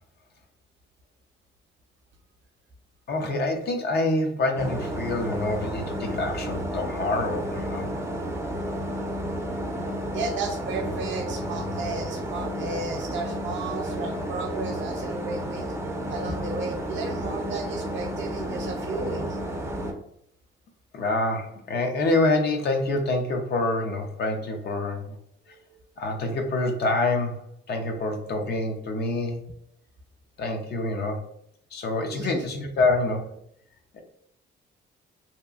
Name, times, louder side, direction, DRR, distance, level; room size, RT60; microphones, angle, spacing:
voice 1, 3.1-7.9 20.9-25.2 26.0-29.4 30.4-31.2 31.7-33.3 33.9-34.0, left 2 dB, 55° left, 4 dB, 0.5 m, -26 dB
sound 1, 4.6-19.9, equal, 15° right, 0.5 m, -32 dB
voice 2, 10.1-15.7 16.1-19.4 25.5-25.8 32.1-32.4, right 3 dB, 70° right, 3 dB, 0.6 m, -33 dB
2.8 x 2.3 x 2.4 m, 0.71 s
cardioid pair, 90°, 20 cm